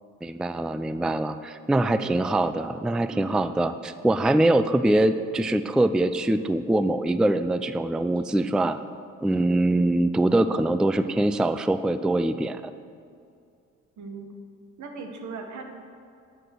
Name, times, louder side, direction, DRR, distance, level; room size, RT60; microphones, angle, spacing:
voice 1, 0.2-8.8 9.2-12.6, right 1 dB, 5° right, 12 dB, 0.3 m, -23 dB
voice 2, 10.3-10.8 11.0-11.2 14.0-14.3 14.8-15.6, right 4 dB, 75° right, 4 dB, 1.7 m, -39 dB
11.0 x 8.0 x 6.2 m, 2.5 s
cardioid pair, 90°, 30 cm